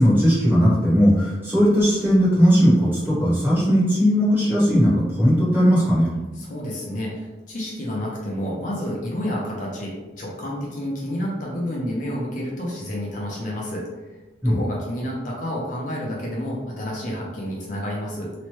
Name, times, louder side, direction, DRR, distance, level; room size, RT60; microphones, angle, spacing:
voice 1, 0.0-6.1 14.4-14.6, equal, 10° right, -9 dB, 1.0 m, -18 dB
voice 2, 6.3-14.2 14.4-18.3, equal, 45° left, -3 dB, 0.5 m, -30 dB
3.0 x 2.1 x 3.0 m, 1.2 s
head